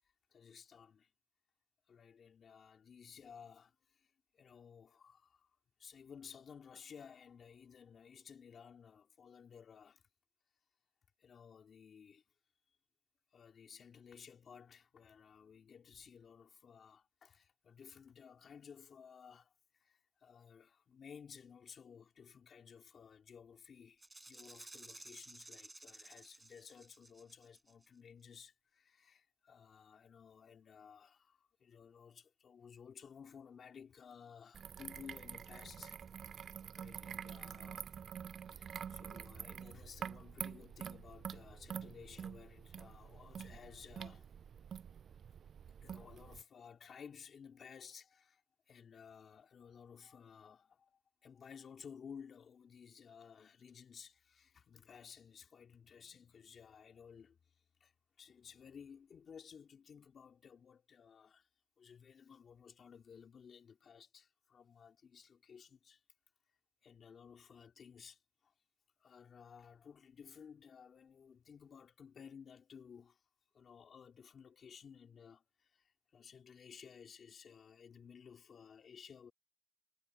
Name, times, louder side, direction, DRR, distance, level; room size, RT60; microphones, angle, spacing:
voice 1, 0.3-1.1 1.9-5.5 5.8-10.0 11.2-12.2 13.3-36.0 36.7-38.0 38.4-44.3 45.8-57.4 57.8-57.9 58.2-61.5 61.8-66.0 66.8-68.5 69.0-73.2 73.5-79.3, left 7 dB, 80° left, 3.6 m, -56 dB
Rattle (instrument), 24.0-27.9, right 2 dB, 20° right, 6.5 m, -55 dB
sound 1, 34.5-46.4, right 8 dB, 85° right, 6.6 m, -47 dB
wide cardioid pair, 105°, 0 cm